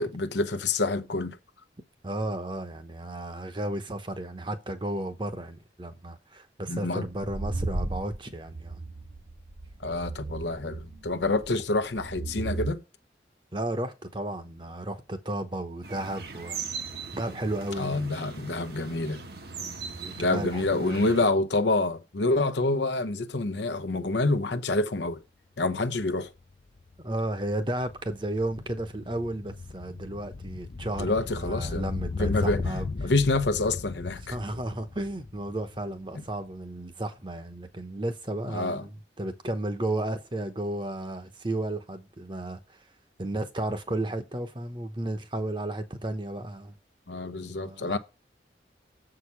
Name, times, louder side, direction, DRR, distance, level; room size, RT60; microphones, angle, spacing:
voice 1, 0.0-1.4 6.7-7.0 9.8-12.8 17.8-19.3 20.2-25.2 25.6-26.3 31.0-31.9 32.2-32.6 33.0-34.3 38.5-38.8 47.1-48.0, left 2 dB, 80° left, 0.8 m, -27 dB
voice 2, 2.0-8.8 13.5-16.6 17.1-18.2 19.6-21.1 27.0-32.9 34.3-42.8 43.2-46.8 47.5-48.0, right 1 dB, 25° right, 0.9 m, -33 dB
sound 1, 7.1-12.7, right 2 dB, 80° right, 1.2 m, -35 dB
sound 2, 15.8-21.2, right 5 dB, 60° right, 1.1 m, -40 dB
sound 3, 26.4-36.5 36.8-36.9, left 3 dB, 50° left, 0.5 m, -36 dB
7.4 x 4.9 x 5.7 m
head